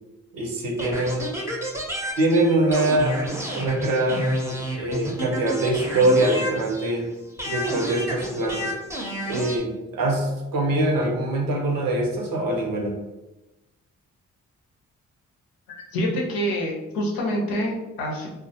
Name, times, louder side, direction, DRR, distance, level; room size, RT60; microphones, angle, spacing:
voice 1, 0.3-1.3 2.2-3.2 3.5-7.1 7.4-8.7 9.3-12.9, right 1 dB, 70° right, 1 dB, 0.7 m, -23 dB
sound 1, 0.8-7.0 7.4-9.6, equal, 10° right, 0.6 m, -30 dB
voice 2, 15.9-18.3, equal, 85° left, -1 dB, 0.7 m, -26 dB
2.2 x 2.1 x 2.8 m, 1.0 s
supercardioid pair, 45°, 35 cm